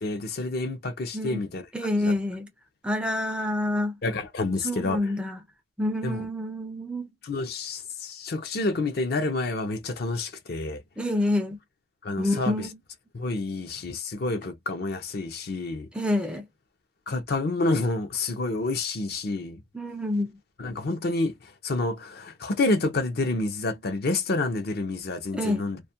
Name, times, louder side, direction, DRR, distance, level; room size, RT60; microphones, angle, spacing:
voice 1, 0.0-1.7 2.0-2.1 4.0-5.1 6.0-6.3 7.2-10.8 12.0-12.7 13.1-15.9 17.1-19.6 20.6-21.3 21.6-25.8, left 2 dB, 50° left, 0.5 m, -28 dB
voice 2, 1.7-2.5 2.8-3.9 4.6-5.4 5.8-7.1 11.0-11.6 12.2-12.8 15.9-16.4 19.7-20.3 25.3-25.7, left 1 dB, 5° right, 0.3 m, -27 dB
2.3 x 2.1 x 2.7 m
head